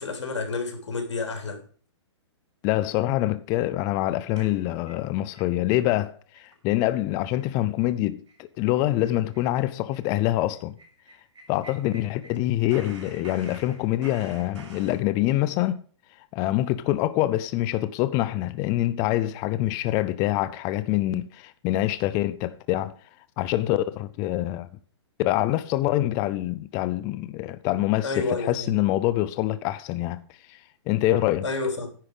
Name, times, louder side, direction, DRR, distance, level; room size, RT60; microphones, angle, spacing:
voice 1, 0.0-1.6 28.0-28.7 31.4-31.9, left 3 dB, 80° left, 3.4 m, -29 dB
voice 2, 2.6-10.8 11.5-15.8 16.1-22.9 23.4-24.7 25.2-31.5, left 15 dB, 20° left, 0.4 m, -25 dB
sound 1, 4.4-5.5 5.9-6.0 6.3-6.6 6.8-6.9 7.3-7.5 7.8-8.0 8.3-8.4 8.7-12.4 12.7-15.0, right 3 dB, 85° right, 4.8 m, -48 dB
10.0 x 4.9 x 7.8 m
hypercardioid pair, 145°, 15 cm